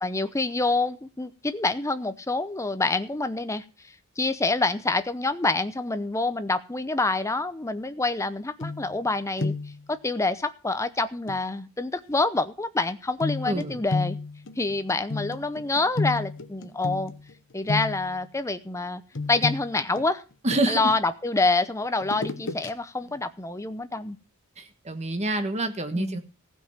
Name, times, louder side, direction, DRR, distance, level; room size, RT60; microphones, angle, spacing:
voice 1, 0.0-3.6 4.2-9.5 9.9-14.2 14.6-17.1 17.5-19.0 19.3-20.2 20.7-24.2 26.0-26.2, left 3 dB, 15° left, 11 dB, 0.7 m, -27 dB
sound 1, 8.6-9.1 9.4-9.8 11.3-11.4 13.2-17.3 17.7-18.2 19.1-21.0 22.0-22.7 23.1-23.2, left 3 dB, 60° left, 1.1 m, -32 dB
voice 2, 13.4-13.8 20.4-20.9 24.6-26.2, right 1 dB, 30° right, 8 dB, 1.4 m, -27 dB
15.5 x 5.5 x 7.2 m, 0.35 s
head